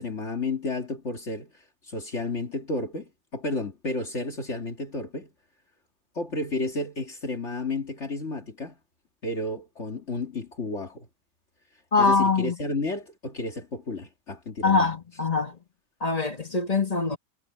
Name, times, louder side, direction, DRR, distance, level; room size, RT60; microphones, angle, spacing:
voice 1, 0.0-1.5 1.8-5.3 6.1-8.8 9.2-11.1 12.0-14.9, left 2 dB, 55° left, 2.6 m, -32 dB
voice 2, 11.9-12.6 14.6-15.6 16.0-17.2, left 4 dB, 30° left, 1.8 m, -23 dB
omnidirectional pair, 1.4 m